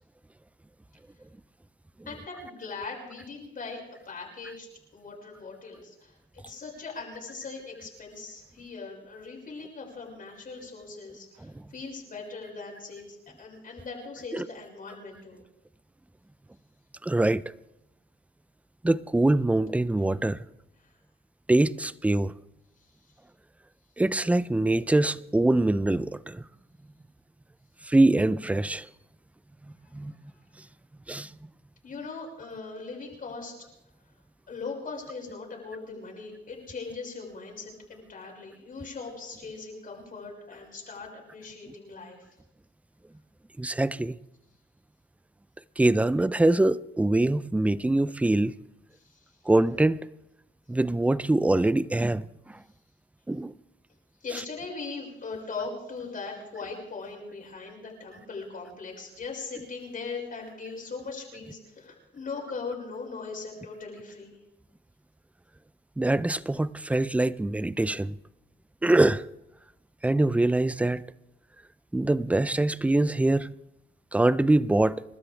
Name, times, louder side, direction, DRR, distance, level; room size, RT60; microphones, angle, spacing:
voice 1, 2.1-15.4 31.8-33.5 34.5-42.2 49.0-49.2 54.2-64.4, left 4 dB, 45° left, 6.0 m, -40 dB
voice 2, 17.0-17.4 18.8-20.4 21.5-22.3 24.0-26.4 27.9-28.9 29.9-30.1 31.1-31.3 43.6-44.2 45.8-48.5 49.5-50.0 50.7-52.6 53.3-53.5 66.0-68.2 68.8-69.3 70.0-71.0 71.9-73.5 74.1-75.0, right 2 dB, 5° right, 0.5 m, -24 dB
29.0 x 13.0 x 3.4 m
cardioid pair, 90°, 20 cm